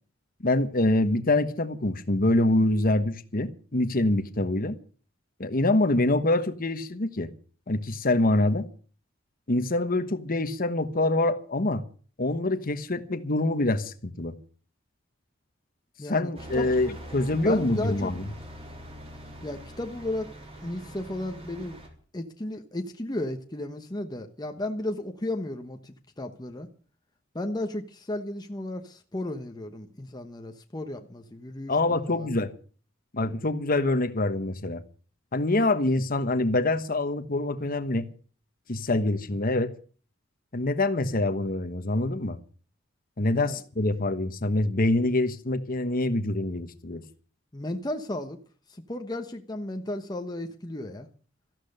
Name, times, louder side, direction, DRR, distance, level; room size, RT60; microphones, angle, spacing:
voice 1, 0.4-4.8 5.4-7.3 7.7-8.7 9.5-11.8 12.2-14.4 16.1-18.2 31.7-32.5 33.1-34.8 35.3-38.1 38.7-39.7 40.5-42.4 43.2-47.0, left 2 dB, 45° left, 1.2 m, -25 dB
voice 2, 16.0-16.7 17.3-18.1 19.4-20.3 20.6-21.8 22.1-26.7 27.3-31.7 32.1-32.3 43.3-43.6 47.5-48.4 48.7-51.1, left 1 dB, 20° left, 1.1 m, -34 dB
sound 1, 16.4-21.9, equal, 30° right, 3.8 m, -43 dB
14.0 x 12.0 x 6.7 m
head